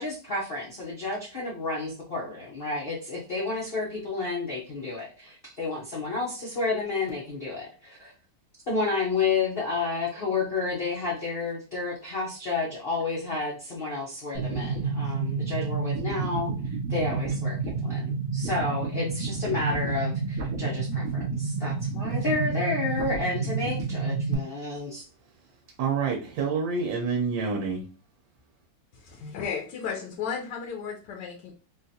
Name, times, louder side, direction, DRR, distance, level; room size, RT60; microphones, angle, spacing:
voice 1, 0.0-8.1 8.7-16.5 16.9-17.6 17.8-25.0, left 3 dB, 55° left, -4 dB, 0.6 m, -31 dB
sound 1, 14.3-24.3, right 4 dB, 60° right, 0.8 m, -29 dB
voice 2, 25.8-27.8, right 5 dB, 85° right, 1 dB, 1.4 m, -27 dB
voice 3, 28.9-31.5, left 6 dB, 75° left, 1 dB, 1.2 m, -34 dB
3.7 x 2.3 x 2.7 m, 0.36 s
omnidirectional pair, 2.0 m